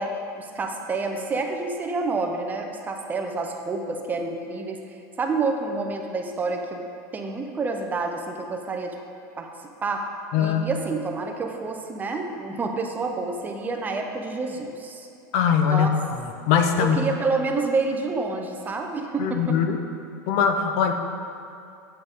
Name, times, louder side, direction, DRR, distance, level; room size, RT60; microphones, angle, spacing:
voice 1, 0.0-6.8 7.1-8.9 9.4-9.5 9.8-10.0 10.4-15.1 15.7-15.9 16.8-19.6, right 3 dB, 20° right, 3 dB, 0.7 m, -28 dB
voice 2, 10.3-10.7 15.3-15.9 16.2-17.0 19.2-19.8 20.3-20.9, left 7 dB, 60° left, 6 dB, 0.8 m, -21 dB
8.6 x 8.1 x 3.6 m, 2.6 s
supercardioid pair, 135°, 10 cm